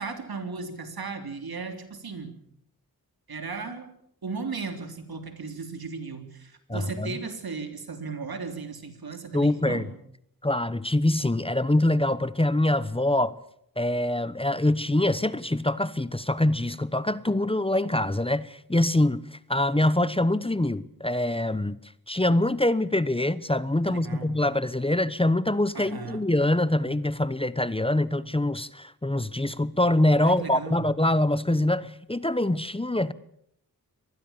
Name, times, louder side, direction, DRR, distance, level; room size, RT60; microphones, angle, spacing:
voice 1, 0.0-2.4 3.3-3.9 4.2-9.9 23.9-24.4 25.7-26.3 30.2-30.9, right 4 dB, 75° right, 3.4 m, -36 dB
voice 2, 6.7-7.1 9.3-9.8 10.4-13.3 13.8-21.8 22.1-33.1, left 1 dB, 15° left, 1.0 m, -24 dB
25.5 x 19.5 x 7.2 m
wide cardioid pair, 60°, 37 cm